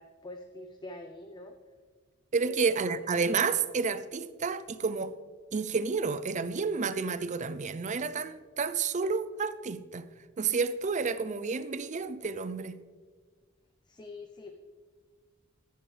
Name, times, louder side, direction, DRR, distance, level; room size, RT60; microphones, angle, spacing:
voice 1, 0.0-1.6 2.4-2.6 13.9-14.5, left 2 dB, 20° left, 0.6 m, -45 dB
voice 2, 2.3-5.1 5.5-10.1 10.4-12.8, right 5 dB, 35° right, 0.5 m, -30 dB
13.5 x 10.0 x 3.3 m
head